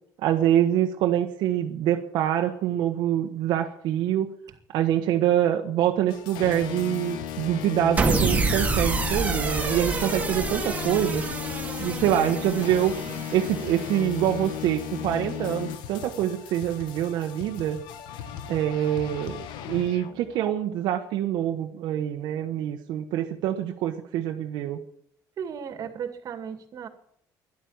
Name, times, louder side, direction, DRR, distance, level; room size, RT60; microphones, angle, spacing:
voice 1, 0.2-4.3 4.7-11.2 11.8-12.9 13.3-17.8 18.5-24.8, right 11 dB, 80° right, 3 dB, 1.2 m, -25 dB
sound 1, 6.1-20.4, left 10 dB, 85° left, 1.4 m, -35 dB
sound 2, 8.0-14.3, right 4 dB, 20° right, 2.0 m, -28 dB
voice 2, 12.8-13.2 25.4-26.9, right 7 dB, 55° right, 9 dB, 2.2 m, -36 dB
12.5 x 11.0 x 8.8 m, 0.69 s
cardioid pair, 120°, 7 cm